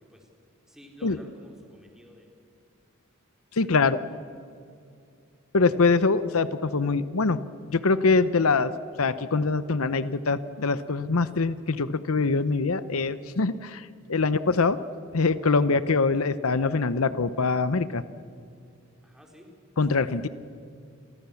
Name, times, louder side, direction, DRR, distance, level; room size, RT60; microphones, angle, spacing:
voice 1, 0.7-2.3 19.0-19.5, equal, 5° right, 1 dB, 4.2 m, -51 dB
voice 2, 3.6-4.0 5.5-7.4 7.7-8.7 9.0-14.8 15.1-18.0 19.8-20.3, left 4 dB, 80° left, 14 dB, 0.8 m, -24 dB
30.0 x 24.0 x 7.1 m, 2.4 s
head